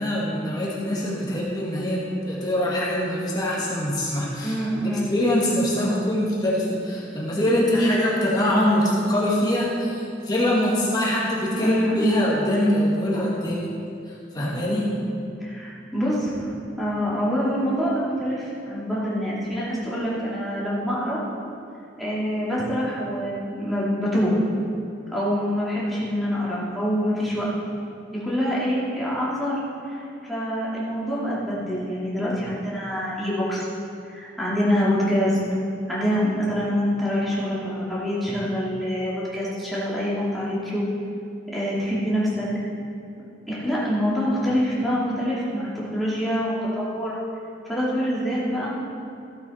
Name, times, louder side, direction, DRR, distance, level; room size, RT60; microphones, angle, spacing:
voice 1, 0.0-13.7 14.1-14.9, left 1 dB, 20° left, -6 dB, 1.8 m, -23 dB
voice 2, 4.4-5.1 11.6-12.2 15.4-21.2 22.0-24.4 25.1-27.4 28.1-29.6 29.9-33.6 34.1-35.4 35.9-40.9 41.5-42.5 43.5-47.1 47.6-48.7, equal, ahead, -8 dB, 2.6 m, -25 dB
14.5 x 7.9 x 4.3 m, 2.6 s
head